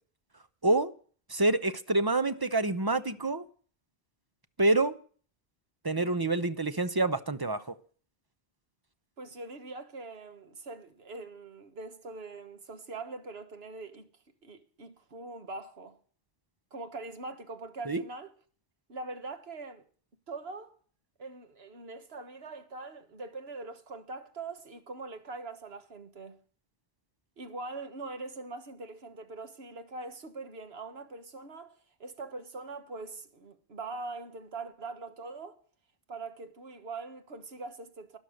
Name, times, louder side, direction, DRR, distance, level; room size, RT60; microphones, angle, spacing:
voice 1, 1.3-3.4 4.6-5.0 5.8-7.6 17.9-18.0, right 2 dB, 25° right, 0.7 m, -27 dB
voice 2, 9.2-14.1 14.4-16.0 16.7-18.3 18.9-19.9 20.3-20.7 21.2-26.4 27.4-35.6 36.1-38.2, right 3 dB, 75° right, 1.7 m, -42 dB
12.5 x 11.5 x 6.5 m
omnidirectional pair, 1.1 m